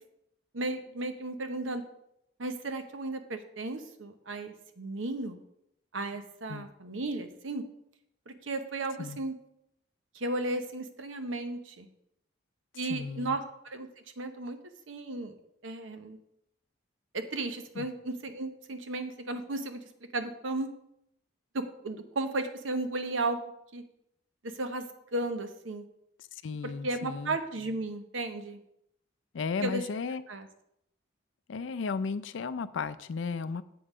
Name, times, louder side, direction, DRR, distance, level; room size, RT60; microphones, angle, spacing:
voice 1, 0.5-1.8 2.4-5.4 5.9-7.6 8.3-9.3 10.1-11.9 12.7-13.9 14.2-14.6 14.9-15.3 15.6-16.2 17.3-19.8 20.1-20.7 21.8-23.4 23.7-23.8 24.5-25.8 26.6-28.6 29.6-29.8 30.3-30.5, right 2 dB, 90° right, 8 dB, 0.9 m, -34 dB
voice 2, 12.9-13.4 17.8-17.9 26.3-27.4 29.3-30.2 31.5-33.6, left 5 dB, 75° left, 14 dB, 0.4 m, -34 dB
7.8 x 5.5 x 4.9 m, 0.77 s
head